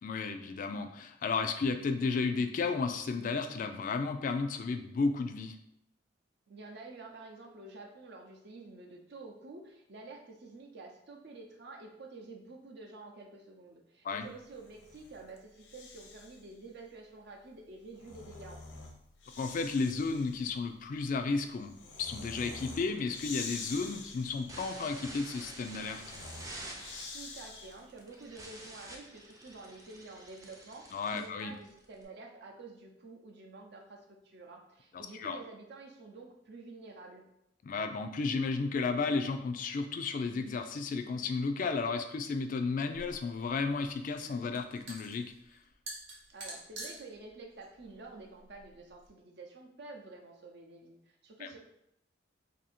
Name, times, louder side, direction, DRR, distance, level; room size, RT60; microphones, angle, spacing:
voice 1, 0.0-5.6 14.0-14.3 19.4-26.0 30.9-31.5 35.1-35.4 37.6-45.3 51.4-51.5, left 4 dB, 45° left, 7 dB, 0.3 m, -33 dB
voice 2, 6.5-18.8 27.1-30.9 31.1-37.2 46.3-51.6, right 3 dB, 60° right, 1 dB, 0.6 m, -49 dB
Breathing, 14.5-16.5 17.7-28.0, left 4 dB, 80° left, 0.6 m, -47 dB
sound 1, 22.5-32.0, right 1 dB, 20° right, 0.5 m, -49 dB
sound 2, 42.9-49.1, right 2 dB, 90° right, 1.1 m, -48 dB
2.7 x 2.7 x 4.2 m, 0.79 s
head